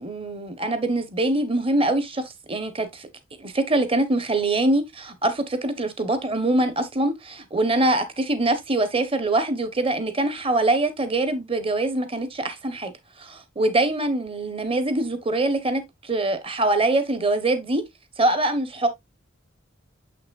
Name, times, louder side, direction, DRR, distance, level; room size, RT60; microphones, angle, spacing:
voice 1, 0.0-3.1 3.4-12.9 13.2-17.8 18.2-18.9, right 2 dB, 25° right, 1.1 m, -24 dB
7.0 x 5.8 x 2.5 m
head